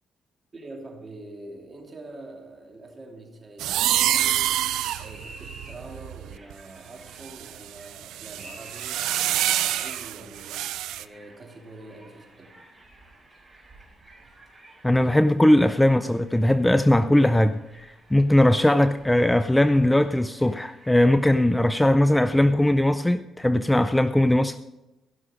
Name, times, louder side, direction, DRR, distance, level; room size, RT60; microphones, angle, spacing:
voice 1, 0.5-4.7 5.0-12.6 14.2-14.3, right 2 dB, 35° right, 2.8 m, -45 dB
sound 1, 3.6-6.5 7.1-11.0, right 13 dB, 90° right, 0.4 m, -27 dB
sound 2, 4.8-22.3, right 1 dB, 15° right, 4.4 m, -51 dB
voice 2, 14.8-24.6, left 1 dB, 10° left, 0.4 m, -20 dB
16.0 x 6.2 x 5.0 m
cardioid pair, 90°, 0 cm